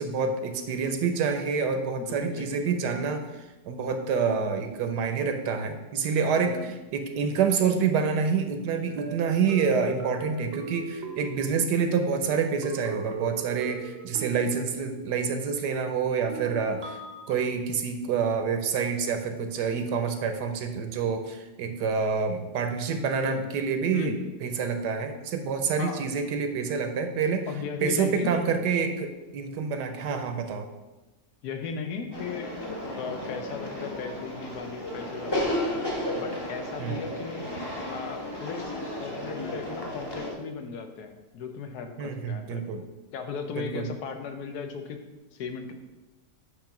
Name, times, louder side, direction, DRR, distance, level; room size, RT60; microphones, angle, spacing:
voice 1, 0.0-3.2 3.7-17.0 17.3-24.1 24.4-27.5 27.8-30.7 36.8-36.9 42.0-42.8 43.5-43.9, right 6 dB, 75° right, 7 dB, 1.2 m, -27 dB
voice 2, 2.0-2.7 6.4-6.7 23.2-23.5 23.9-24.2 25.8-26.0 27.5-28.4 31.4-32.6 33.0-35.8 36.2-37.5 37.9-38.6 39.0-42.6 43.1-45.0 45.3-45.7, left 6 dB, 70° left, 6 dB, 1.3 m, -36 dB
sound 1, 9.0-12.1 12.6-15.2 16.3-17.3, right 5 dB, 50° right, 0.8 m, -40 dB
sound 2, 32.1-40.3, left 1 dB, 20° left, 0.8 m, -33 dB
8.5 x 3.2 x 5.8 m, 1.1 s
omnidirectional pair, 1.9 m